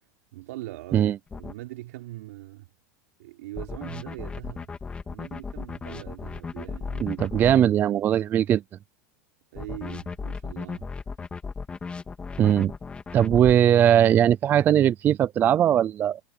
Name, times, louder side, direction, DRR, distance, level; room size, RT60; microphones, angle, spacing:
voice 1, 0.3-2.7 3.2-4.7 5.1-7.6 9.5-10.9, right 17 dB, 70° right, 4.2 m, -41 dB
sound 1, 1.3-1.5 3.5-7.5 9.5-13.5, left 5 dB, 15° left, 2.6 m, -35 dB
voice 2, 7.0-8.6 12.4-12.7 13.1-16.2, right 10 dB, 20° right, 0.4 m, -20 dB
supercardioid pair, 155°, 9 cm